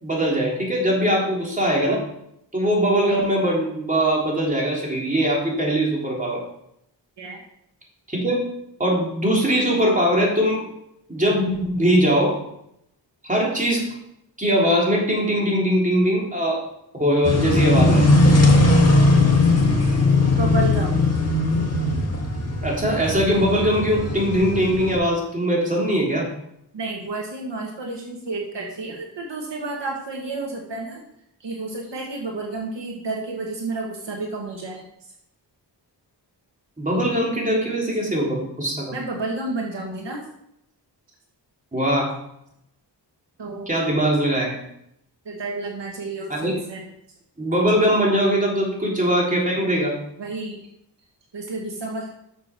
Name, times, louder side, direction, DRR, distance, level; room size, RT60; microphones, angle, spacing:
voice 1, 0.0-2.0 2.5-6.4 8.1-8.5 8.8-10.7 11.1-12.4 13.2-13.9 14.4-16.6 16.9-18.1 22.6-26.3 36.8-39.0 41.7-42.1 43.7-44.5 46.3-46.5 47.4-50.0, equal, 20° right, -3 dB, 3.4 m, -21 dB
sound 1, 17.2-25.0, left 2 dB, 35° left, 1.7 m, -18 dB
voice 2, 20.4-21.0 26.7-31.0 31.4-34.8 38.9-40.2 43.4-43.7 45.2-46.8 50.2-50.6 51.3-52.1, right 2 dB, 75° right, 0 dB, 1.6 m, -30 dB
6.8 x 6.1 x 6.0 m, 0.76 s
cardioid pair, 65°, 43 cm